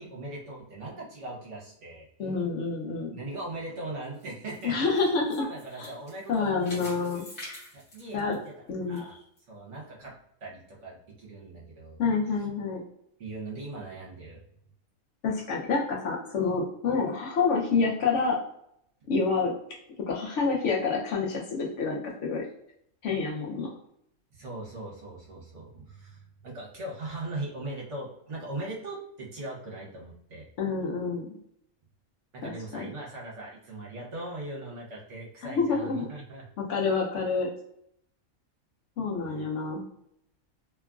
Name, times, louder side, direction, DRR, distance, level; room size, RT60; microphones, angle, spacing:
voice 1, 0.0-2.1 3.1-5.1 5.4-7.0 7.7-8.5 8.9-9.2 9.5-10.1 10.4-12.0 13.2-14.4 24.3-30.5 32.3-36.5 39.3-39.4, right 2 dB, 60° right, -3 dB, 1.0 m, -40 dB
voice 2, 2.2-3.1 4.6-5.3 6.3-7.3 8.1-8.4 8.7-9.1 12.0-12.8 15.2-18.4 19.1-19.5 20.1-22.4 23.0-23.7 30.6-31.4 32.4-32.9 35.4-36.1 36.7-37.5 39.0-39.8, left 4 dB, 65° left, -1 dB, 0.8 m, -28 dB
sound 1, 4.0-9.0 9.4-9.5 10.1-10.2, left 1 dB, 50° left, 1.3 m, -46 dB
2.8 x 2.4 x 2.3 m, 0.73 s
omnidirectional pair, 1.5 m